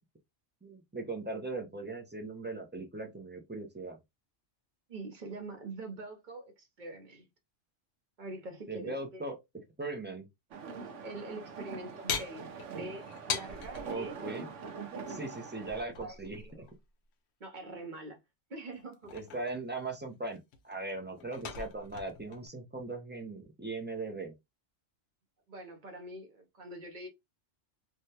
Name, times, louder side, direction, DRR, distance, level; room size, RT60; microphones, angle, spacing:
voice 1, 0.6-4.0 8.7-9.4 9.8-10.3 13.8-14.5 15.1-16.7 19.1-24.3, right 2 dB, 15° right, 0.4 m, -39 dB
voice 2, 4.9-7.3 8.2-9.2 10.8-14.2 14.9-15.1 16.0-16.7 17.4-18.2 18.5-19.1 25.5-27.1, right 2 dB, 45° right, 0.8 m, -44 dB
sound 1, 10.5-15.8, right 5 dB, 80° right, 1.0 m, -43 dB
sound 2, 12.1-13.9 15.7-16.7 18.7-19.9 20.3-22.5, left 6 dB, 70° left, 0.9 m, -40 dB
3.5 x 2.2 x 2.8 m
omnidirectional pair, 1.2 m